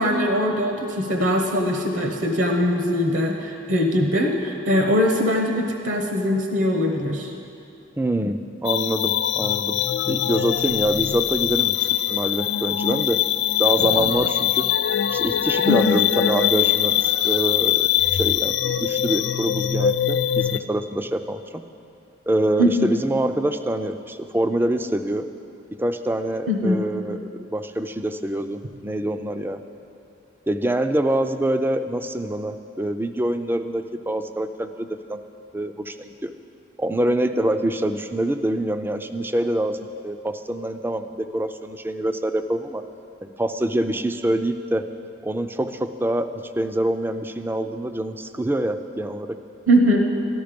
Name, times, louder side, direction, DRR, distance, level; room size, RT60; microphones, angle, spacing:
voice 1, 0.0-7.3 15.6-16.0 22.6-22.9 26.5-26.8 49.7-50.1, equal, 70° right, 2 dB, 1.0 m, -21 dB
voice 2, 8.0-9.8 10.1-13.2 13.6-14.7 15.1-21.6 22.3-25.3 25.8-29.6 30.5-35.2 35.5-36.3 36.8-39.8 40.0-42.8 43.2-44.9 45.2-49.4, right 1 dB, 10° right, 9 dB, 0.4 m, -25 dB
sound 1, 8.6-20.6, left 11 dB, 60° left, 0.3 m, -22 dB
13.5 x 12.0 x 5.2 m, 2.6 s
head